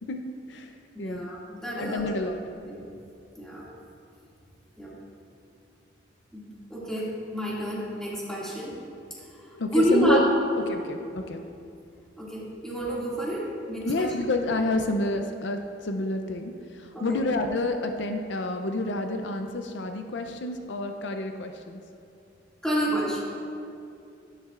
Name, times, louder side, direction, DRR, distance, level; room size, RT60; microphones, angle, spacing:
voice 1, 0.0-1.3 1.8-2.4 9.5-10.2 10.7-11.4 13.9-21.8, left 2 dB, 75° left, 5 dB, 0.5 m, -29 dB
voice 2, 0.9-2.1 2.7-2.9 3.4-3.7 4.8-4.9 6.3-8.8 9.7-10.2 12.2-14.1 16.9-17.2 22.6-23.2, equal, 5° left, -7 dB, 2.2 m, -28 dB
12.0 x 10.5 x 2.5 m, 2.5 s
head